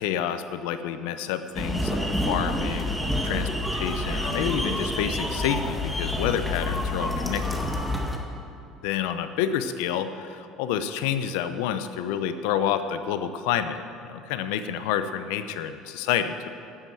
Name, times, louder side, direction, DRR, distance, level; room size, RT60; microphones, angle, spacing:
voice 1, 0.0-3.0 3.2-7.6 8.8-16.5, left 9 dB, 80° left, 10 dB, 0.7 m, -29 dB
sound 1, 1.5-8.2, left 1 dB, ahead, 1.7 m, -28 dB
12.5 x 7.7 x 7.7 m, 2.6 s
supercardioid pair, 100°, 0 cm